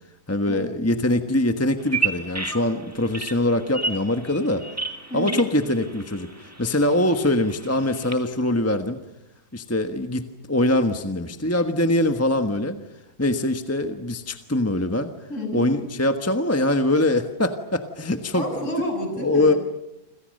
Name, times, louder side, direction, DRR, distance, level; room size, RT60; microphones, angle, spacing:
voice 1, 0.3-4.6 5.1-9.0 9.5-12.8 13.2-15.1 15.5-18.7 19.2-19.5, left 1 dB, 10° left, 7 dB, 1.1 m, -23 dB
Bird vocalization bird call bird song, 1.8-8.1, right 4 dB, 10° right, 2.1 m, -32 dB
voice 2, 5.1-5.5 15.3-15.7 18.3-19.6, left 1 dB, 45° left, 4 dB, 7.6 m, -29 dB
29.0 x 27.0 x 6.6 m, 0.85 s
omnidirectional pair, 1.8 m